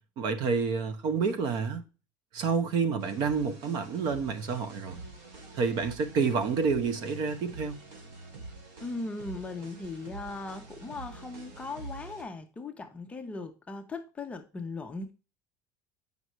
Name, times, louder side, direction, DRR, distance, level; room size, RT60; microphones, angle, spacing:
voice 1, 0.2-1.8 2.3-5.0 5.5-7.8, right 5 dB, 45° right, 0.9 m, -29 dB
sound 1, 3.0-12.2, right 2 dB, 80° right, 2.7 m, -46 dB
voice 2, 8.8-15.1, left 3 dB, 10° left, 0.7 m, -38 dB
7.8 x 5.5 x 3.0 m
cardioid pair, 165°, 10 cm